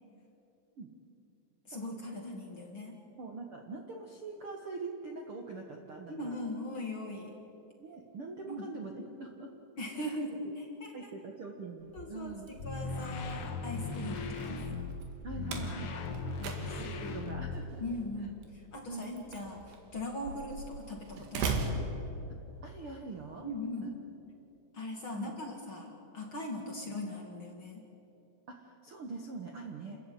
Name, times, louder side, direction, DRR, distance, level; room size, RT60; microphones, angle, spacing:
voice 1, 1.7-3.0 6.1-7.4 8.5-8.7 9.8-11.1 11.9-14.8 16.4-17.1 17.8-21.7 23.4-23.9 24.7-27.9 29.9-30.0, left 1 dB, 40° left, 1 dB, 2.2 m, -40 dB
voice 2, 3.2-6.4 7.8-9.5 10.0-10.1 10.9-12.5 15.2-16.1 16.8-17.8 18.9-19.1 20.3-20.4 22.3-23.5 25.1-25.3 28.5-30.0, right 3 dB, 55° right, 2 dB, 1.6 m, -43 dB
Slam, 11.8-22.7, right 3 dB, 80° right, 4.0 m, -41 dB
sound 1, 12.4-17.9, left 3 dB, 55° left, 1.6 m, -38 dB
29.5 x 14.5 x 9.4 m, 2.9 s
omnidirectional pair, 4.6 m